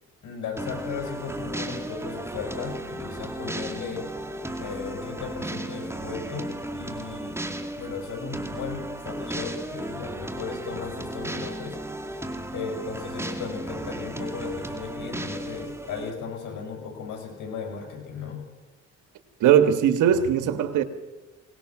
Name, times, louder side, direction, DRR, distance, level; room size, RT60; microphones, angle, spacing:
voice 1, 0.2-4.0 4.6-7.4 7.7-12.3 12.5-18.4, left 5 dB, 80° left, 7.3 m, -36 dB
sound 1, 0.6-16.1, right 1 dB, 10° right, 2.1 m, -35 dB
voice 2, 19.4-20.8, right 9 dB, 85° right, 1.7 m, -19 dB
23.5 x 19.0 x 6.2 m
cardioid pair, 90°, 30 cm